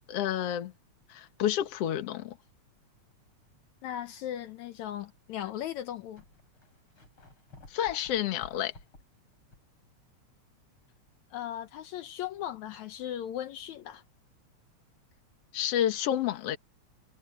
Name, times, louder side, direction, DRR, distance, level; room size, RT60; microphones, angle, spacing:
voice 1, 0.1-0.7 1.1-2.4 7.7-8.7 15.5-16.6, left 11 dB, 60° left, 2.2 m, -29 dB
sound 1, 3.6-3.9 4.5-4.6 5.6-5.7 5.8-9.8 10.2-10.3 13.8-13.9, left 2 dB, 45° left, 8.8 m, -55 dB
voice 2, 3.8-6.2 11.3-14.0, left 11 dB, 75° left, 2.2 m, -37 dB
omnidirectional pair, 3.4 m